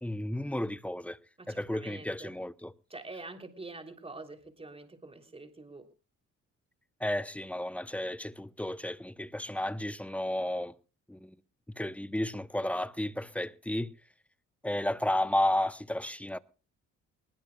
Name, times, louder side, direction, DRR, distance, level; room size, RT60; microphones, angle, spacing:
voice 1, 0.0-1.2 1.5-2.7 7.0-10.7 11.1-11.3 11.8-13.9 14.6-16.4, left 1 dB, 5° left, 0.8 m, -32 dB
voice 2, 1.4-2.3 2.9-5.9, right 2 dB, 20° right, 3.3 m, -46 dB
21.5 x 19.5 x 2.4 m
cardioid pair, 90°, 30 cm